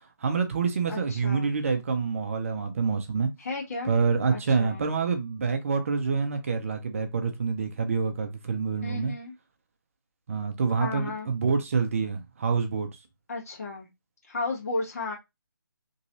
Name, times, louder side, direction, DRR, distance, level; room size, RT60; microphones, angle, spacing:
voice 1, 0.2-3.3 3.8-9.1 10.3-12.9, right 5 dB, 40° right, 0.6 m, -27 dB
voice 2, 0.9-1.5 3.4-3.9 4.3-4.9 8.8-9.3 10.8-11.3 13.3-13.9 14.3-15.2, left 3 dB, 45° left, 1.4 m, -34 dB
3.1 x 2.5 x 2.8 m
figure-of-eight pair, 150°, 12 cm